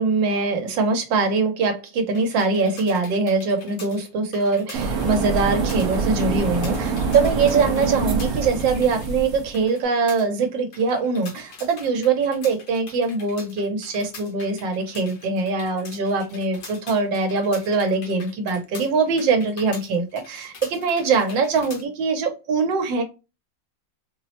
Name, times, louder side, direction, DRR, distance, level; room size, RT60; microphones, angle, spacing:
voice 1, 0.0-23.0, right 4 dB, 80° right, 1.5 m, -22 dB
sound 1, 2.1-21.8, left 4 dB, 80° left, 1.8 m, -44 dB
sound 2, 4.7-9.5, right 5 dB, 60° right, 1.1 m, -25 dB
4.4 x 2.0 x 2.7 m
omnidirectional pair, 2.0 m